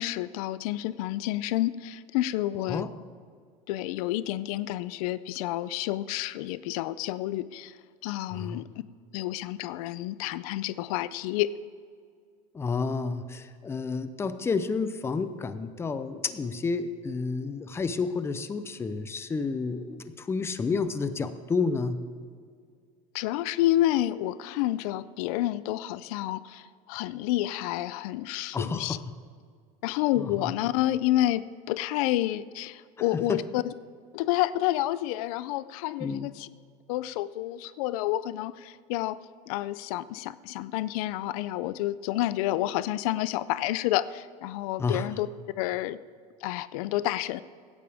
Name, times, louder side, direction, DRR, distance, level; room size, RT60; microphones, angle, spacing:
voice 1, 0.0-2.9 3.7-7.7 8.0-8.7 9.1-11.5 23.1-29.0 29.8-33.7 34.1-36.5 36.9-39.2 39.5-45.3 45.6-46.0 46.4-47.4, left 15 dB, 85° left, 16 dB, 0.5 m, -29 dB
voice 2, 8.3-8.6 12.5-22.1 28.5-29.0 30.2-30.5 33.1-33.4 36.0-36.3 44.8-45.1, left 4 dB, 15° left, 11 dB, 0.5 m, -30 dB
16.5 x 10.0 x 3.5 m, 2.1 s
cardioid pair, 145°, 18 cm